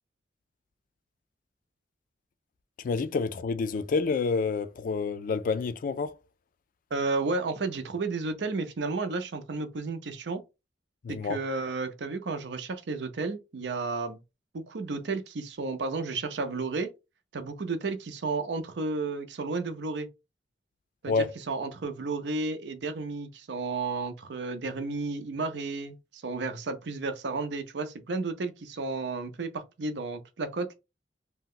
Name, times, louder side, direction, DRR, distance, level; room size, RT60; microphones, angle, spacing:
voice 1, 2.8-6.1 11.0-11.4 21.1-21.3, left 4 dB, 50° left, 0.3 m, -28 dB
voice 2, 6.9-10.4 11.1-14.2 14.5-16.9 17.3-20.1 21.0-30.7, right 3 dB, 75° right, 0.5 m, -32 dB
2.8 x 2.1 x 3.6 m
head